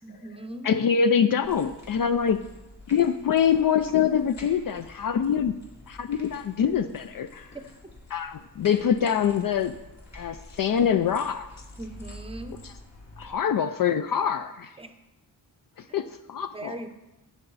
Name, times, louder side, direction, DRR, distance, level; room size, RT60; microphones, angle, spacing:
voice 1, 0.0-0.7 11.8-12.6 14.8-14.9 16.5-16.9, right 1 dB, 15° right, 7 dB, 0.7 m, -39 dB
voice 2, 0.6-2.4 2.9-5.5 5.9-7.5 8.1-9.8 10.1-11.5 13.2-14.8 15.8-16.7, left 7 dB, 55° left, 10 dB, 0.5 m, -24 dB
sound 1, 1.4-13.3, left 1 dB, 40° left, 2.3 m, -48 dB
12.5 x 8.5 x 4.0 m, 1.0 s
wide cardioid pair, 155°, 39 cm